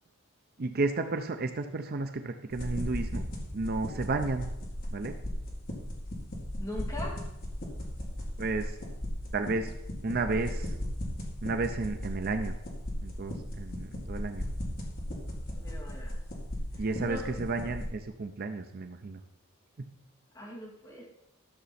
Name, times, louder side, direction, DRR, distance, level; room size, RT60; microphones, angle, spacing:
voice 1, 0.6-3.2 3.5-4.5 4.9-5.1 8.4-8.8 9.3-9.7 10.0-10.7 11.4-12.5 13.0-14.4 16.7-19.2 19.8-19.9, right 3 dB, 45° right, 7 dB, 0.6 m, -32 dB
sound 1, 2.5-17.9, equal, 45° left, 2.1 m, -37 dB
voice 2, 6.6-7.2 15.5-16.2 16.7-17.3 20.3-21.1, left 1 dB, 15° left, -4 dB, 2.5 m, -41 dB
12.5 x 6.9 x 4.2 m, 0.90 s
head